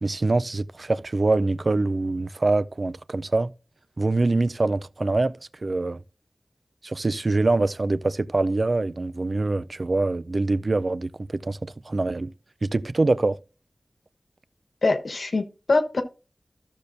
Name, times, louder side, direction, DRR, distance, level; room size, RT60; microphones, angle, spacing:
voice 1, 0.0-3.5 4.0-5.3 5.6-6.0 6.8-12.3 12.6-13.4, right 2 dB, 55° right, 0.4 m, -24 dB
voice 2, 14.8-16.0, left 3 dB, 85° left, 1.2 m, -23 dB
13.5 x 6.7 x 2.6 m
wide cardioid pair, 75°, 0 cm